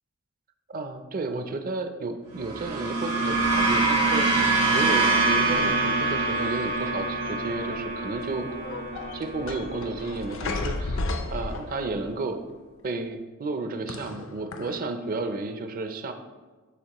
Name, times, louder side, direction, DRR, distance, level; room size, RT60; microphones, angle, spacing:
voice 1, 0.7-8.5 9.1-11.0 11.3-12.4 12.8-16.1, right 3 dB, 40° right, 7 dB, 0.5 m, -32 dB
sound 1, 2.4-10.8, right 3 dB, 85° right, 1.9 m, -25 dB
sound 2, 3.4-5.2 6.3-7.0 7.2-7.8 8.2-12.1 13.9-14.8, left 2 dB, 60° left, 0.6 m, -35 dB
11.5 x 4.1 x 3.0 m, 1.3 s
head